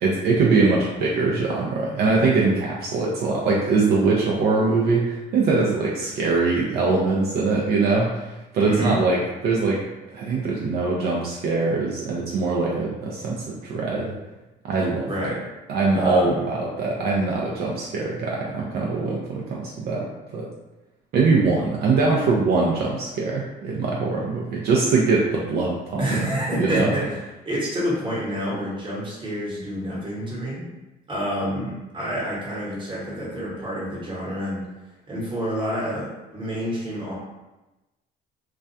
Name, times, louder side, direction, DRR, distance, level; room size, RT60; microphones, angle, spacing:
voice 1, 0.0-9.8 10.1-14.1 14.6-15.1 15.7-20.5 21.1-26.0 26.6-26.9, right 3 dB, 65° right, -3 dB, 0.4 m, -22 dB
voice 2, 8.6-9.0 15.1-15.4 15.9-16.4 26.0-27.2 27.4-30.7 31.1-34.6 35.1-37.2, equal, 30° right, -6 dB, 1.0 m, -28 dB
2.3 x 2.1 x 2.6 m, 1.0 s
cardioid pair, 110°, 17 cm